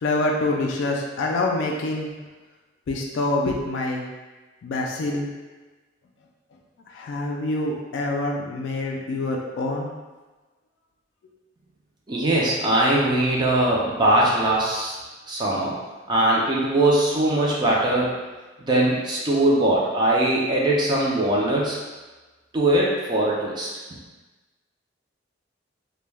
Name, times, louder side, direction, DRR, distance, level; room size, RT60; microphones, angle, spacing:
voice 1, 0.0-2.1 2.9-4.0 4.6-5.3 6.9-9.9, left 2 dB, 75° left, 0 dB, 0.3 m, -26 dB
voice 2, 12.1-14.9 15.3-15.7 16.1-18.1 18.6-21.8 22.5-23.7, right 1 dB, 25° right, -4 dB, 0.4 m, -21 dB
2.2 x 2.1 x 3.2 m, 1.2 s
head